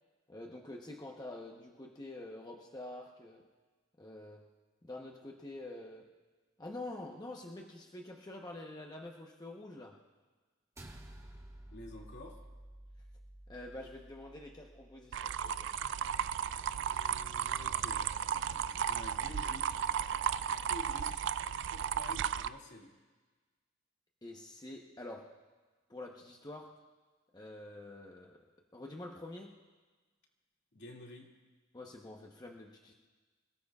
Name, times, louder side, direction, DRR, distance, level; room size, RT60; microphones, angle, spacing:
voice 1, 0.3-3.5 4.0-4.5 4.8-6.1 6.6-10.0 13.5-15.8 24.2-25.4 25.9-26.8 27.3-28.4 28.7-29.6 31.7-32.9, left 2 dB, 20° left, 0 dB, 1.0 m, -47 dB
sound 1, 10.8-15.3, right 1 dB, 15° right, 1.4 m, -53 dB
voice 2, 11.7-12.4 16.9-18.0 18.8-19.7 20.7-21.2 21.7-22.9 30.7-31.3, left 1 dB, 60° left, -1 dB, 2.4 m, -49 dB
sound 2, 15.1-22.5, right 8 dB, 65° right, 0.4 m, -34 dB
26.5 x 18.0 x 2.4 m, 1.3 s
head